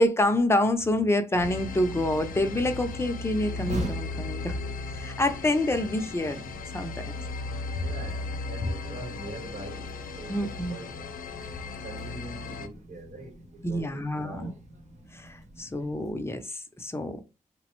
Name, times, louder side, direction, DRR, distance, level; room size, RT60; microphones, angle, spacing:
voice 1, 0.0-4.6 4.9-6.4 6.7-7.1 10.3-10.8 13.6-14.5 15.1-17.2, left 1 dB, 20° left, 0.5 m, -27 dB
sound 1, 1.3-16.1, right 1 dB, 55° right, 0.7 m, -44 dB
sound 2, 1.4-12.7, left 3 dB, 85° left, 0.4 m, -36 dB
voice 2, 7.8-10.9 11.8-14.6, right 2 dB, 80° right, 1.2 m, -43 dB
3.2 x 2.0 x 2.9 m
cardioid pair, 75°, 14 cm